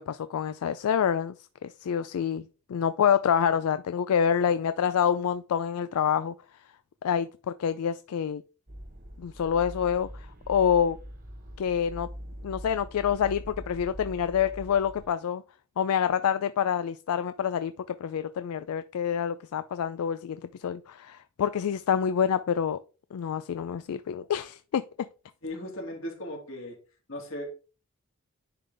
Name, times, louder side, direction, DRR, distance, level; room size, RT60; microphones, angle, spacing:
voice 1, 0.0-1.3 1.6-2.4 2.7-6.3 7.0-8.4 9.2-11.0 11.6-12.1 12.4-15.4 15.8-22.8 23.1-24.8, left 8 dB, 80° left, 0.3 m, -27 dB
sound 1, 8.7-15.1, equal, 40° right, 1.2 m, -43 dB
voice 2, 25.4-26.8 27.1-27.5, left 1 dB, 60° left, 2.3 m, -37 dB
10.0 x 3.9 x 3.4 m
head